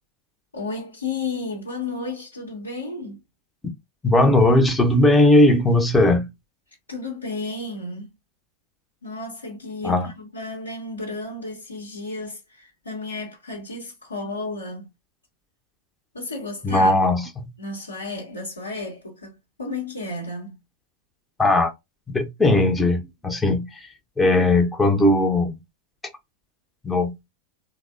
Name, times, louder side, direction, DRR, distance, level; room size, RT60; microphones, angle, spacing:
voice 1, 0.5-3.2 6.9-8.1 9.0-14.9 16.1-17.0 17.6-20.6, left 3 dB, 80° left, 0.8 m, -33 dB
voice 2, 4.0-6.3 9.8-10.1 16.6-17.5 21.4-21.7 22.1-23.9 24.2-25.5 26.8-27.3, left 1 dB, 10° left, 0.7 m, -18 dB
3.2 x 2.0 x 2.4 m
figure-of-eight pair, 90°, 0 cm